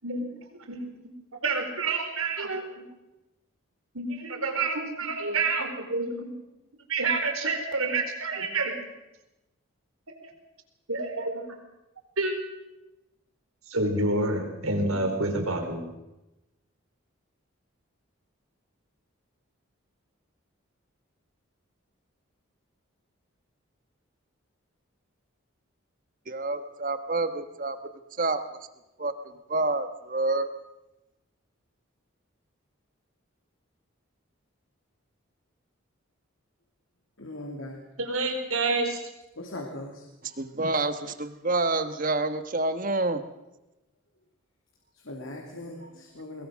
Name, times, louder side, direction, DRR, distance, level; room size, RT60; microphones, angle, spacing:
voice 1, 0.0-1.1 1.4-2.9 3.9-6.4 6.9-8.9 10.9-11.6 12.2-12.4 13.7-15.8 38.0-39.0, right 3 dB, 80° right, 5 dB, 4.4 m, -28 dB
voice 2, 26.3-27.8 28.2-28.4 29.0-29.1 29.5-30.5 40.2-43.2, right 2 dB, 40° right, 10 dB, 1.4 m, -28 dB
voice 3, 37.2-37.8 39.4-40.0 44.9-46.5, left 1 dB, 70° left, 1 dB, 2.9 m, -39 dB
22.0 x 21.5 x 6.4 m, 0.97 s
head